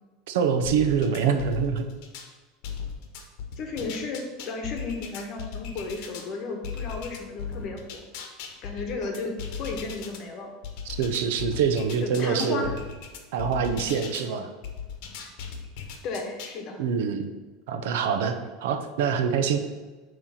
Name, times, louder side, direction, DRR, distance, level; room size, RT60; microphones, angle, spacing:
voice 1, 0.3-1.9 10.8-12.7 13.3-14.5 16.8-17.3 17.7-19.6, right 6 dB, 75° right, 7 dB, 0.7 m, -25 dB
sound 1, 0.6-2.3 2.6-6.3 6.6-10.2 10.6-14.3 14.6-16.6, left 6 dB, 50° left, 1.0 m, -37 dB
voice 2, 3.6-8.0 8.6-10.5 12.0-12.7 16.0-16.8, left 3 dB, 35° left, 3 dB, 1.1 m, -34 dB
8.8 x 3.2 x 5.7 m, 1.3 s
supercardioid pair, 170°, 0 cm